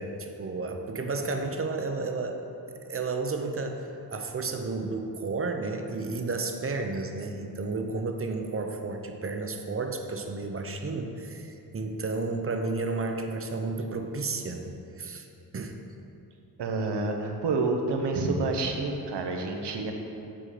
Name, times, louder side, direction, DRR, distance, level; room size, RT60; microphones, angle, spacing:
voice 1, 0.0-2.4 2.7-15.3 15.5-15.8, right 3 dB, 35° right, 5 dB, 0.7 m, -32 dB
voice 2, 16.6-19.9, right 3 dB, 90° right, 3 dB, 1.1 m, -28 dB
7.8 x 7.3 x 4.9 m, 2.8 s
wide cardioid pair, 125°, 40 cm